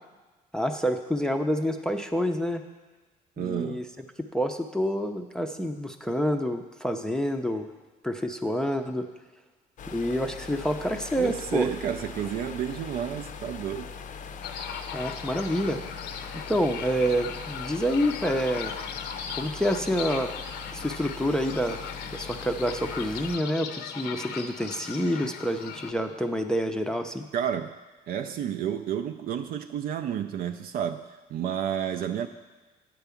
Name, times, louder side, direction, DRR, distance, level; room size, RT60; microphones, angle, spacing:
voice 1, 0.5-2.6 3.4-3.8 4.3-7.7 8.0-9.1 9.9-11.7 14.9-15.8 16.5-18.7 19.4-20.4 20.7-21.8 22.1-27.2, equal, 5° left, 5 dB, 0.5 m, -27 dB
voice 2, 3.4-3.8 11.2-13.9 27.3-27.7 28.1-32.3, right 9 dB, 60° right, 7 dB, 0.4 m, -31 dB
sound 1, 9.8-23.4, left 5 dB, 50° left, 0.5 m, -41 dB
sound 2, 14.4-25.9, left 7 dB, 80° left, 0.7 m, -38 dB
8.9 x 4.7 x 7.0 m, 1.2 s
cardioid pair, 110°, 17 cm